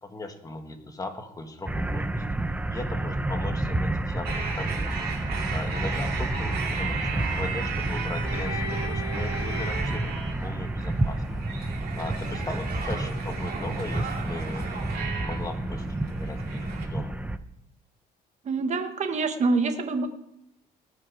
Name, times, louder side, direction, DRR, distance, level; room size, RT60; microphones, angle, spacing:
voice 1, 0.0-2.2 2.7-5.0 5.5-11.2 12.0-14.9 15.2-17.2, left 2 dB, 20° left, 5 dB, 1.7 m, -38 dB
sound 1, 1.7-17.4, right 2 dB, 10° right, 0.6 m, -30 dB
sound 2, 4.2-16.9, right 5 dB, 65° right, 2.6 m, -36 dB
voice 2, 18.4-20.1, right 3 dB, 45° right, 6 dB, 1.4 m, -26 dB
19.0 x 6.5 x 4.9 m, 0.79 s
cardioid pair, 110°, 17 cm